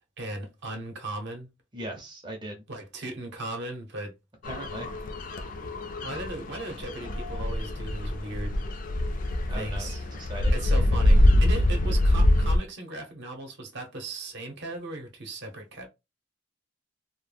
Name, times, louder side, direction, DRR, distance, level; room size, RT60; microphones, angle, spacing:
voice 1, 0.2-1.5 2.7-4.1 6.0-8.6 9.5-10.0 10.5-15.9, right 2 dB, 60° right, 0.7 m, -37 dB
voice 2, 1.7-2.6 4.4-4.9 9.5-10.6, right 1 dB, 25° right, 0.5 m, -39 dB
sound 1, 4.4-12.6, left 1 dB, 45° left, 0.3 m, -24 dB
2.1 x 2.0 x 3.2 m
head